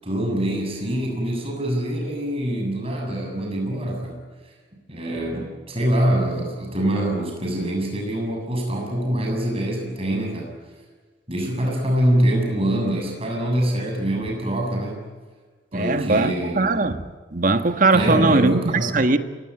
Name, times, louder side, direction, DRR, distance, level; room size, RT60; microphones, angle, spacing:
voice 1, 0.0-4.2 4.9-10.5 11.3-15.0 15.7-16.7 17.9-18.9, right 1 dB, 35° right, 1 dB, 7.2 m, -24 dB
voice 2, 15.7-19.2, right 3 dB, 50° right, 9 dB, 1.5 m, -20 dB
29.0 x 18.0 x 10.0 m, 1.5 s
head